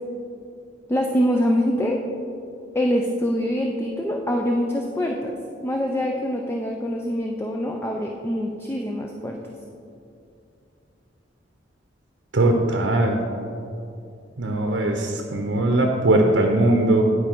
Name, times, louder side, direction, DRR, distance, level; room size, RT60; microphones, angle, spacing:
voice 1, 0.9-2.0 2.7-5.3 5.6-9.4, equal, 15° left, 1 dB, 0.4 m, -24 dB
voice 2, 12.3-13.2 14.4-17.0, right 2 dB, 75° right, 2 dB, 0.7 m, -20 dB
10.0 x 4.6 x 4.5 m, 2.6 s
head